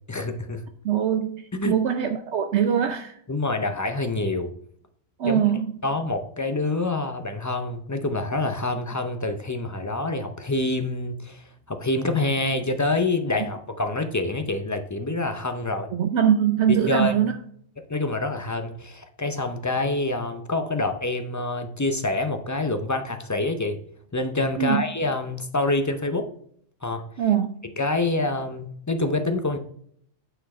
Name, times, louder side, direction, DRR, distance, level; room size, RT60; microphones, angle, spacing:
voice 1, 0.1-0.6 1.5-1.7 3.3-4.5 5.2-5.4 5.8-15.9 16.7-17.1 17.8-23.8 24.1-26.3 26.8-27.0 27.8-29.6, left 2 dB, 25° left, 0.4 m, -26 dB
voice 2, 0.8-3.2 5.2-5.7 15.9-17.3 24.6-24.8 27.2-27.5, right 9 dB, 65° right, 0.9 m, -22 dB
9.0 x 4.6 x 4.2 m
omnidirectional pair, 1.3 m